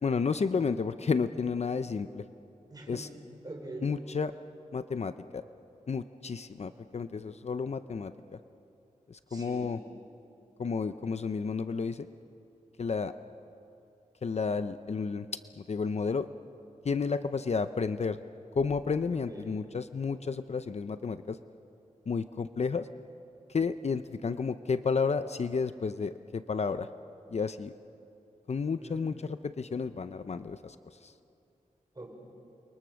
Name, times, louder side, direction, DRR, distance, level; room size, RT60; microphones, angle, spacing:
voice 1, 0.0-2.2 2.9-3.1 3.8-4.3 4.7-5.4 5.9-8.4 9.1-9.8 10.6-12.1 12.8-13.1 14.2-15.3 15.6-16.3 16.8-18.2 18.5-21.4 22.1-22.9 23.5-26.9 27.3-27.7 28.5-30.8 31.0-31.1, left 5 dB, 55° left, 11 dB, 0.6 m, -31 dB
voice 2, 2.7-3.1 3.4-3.9 9.3-9.7 19.1-19.5 28.8-29.2 31.9-32.1, right 2 dB, 30° right, 1 dB, 5.4 m, -44 dB
29.0 x 23.5 x 6.4 m, 2.6 s
wide cardioid pair, 105°, 14 cm